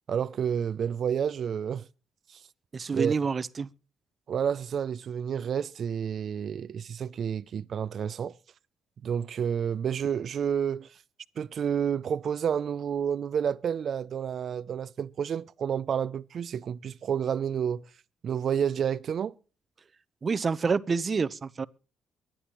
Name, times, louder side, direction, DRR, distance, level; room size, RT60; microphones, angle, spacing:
voice 1, 0.1-1.9 2.3-2.4 2.9-3.1 4.3-8.4 9.0-11.0 11.4-17.8 18.2-19.4, right 8 dB, 60° right, 0.5 m, -30 dB
voice 2, 2.7-3.7 20.2-21.6, right 5 dB, 35° right, 0.8 m, -28 dB
23.5 x 10.0 x 3.0 m
cardioid pair, 90°, 0 cm